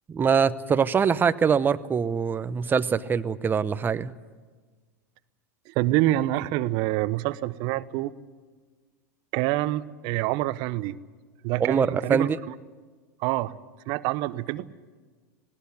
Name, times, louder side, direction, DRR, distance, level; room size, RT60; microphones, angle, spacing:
voice 1, 0.1-4.1 11.6-12.4, right 6 dB, 20° right, 13 dB, 0.9 m, -23 dB
voice 2, 5.7-8.1 9.3-11.0 11.4-12.5 13.2-13.5 13.9-14.7, right 16 dB, 55° right, 15 dB, 0.9 m, -26 dB
19.5 x 18.0 x 9.7 m, 1.4 s
hypercardioid pair, 100°, 9 cm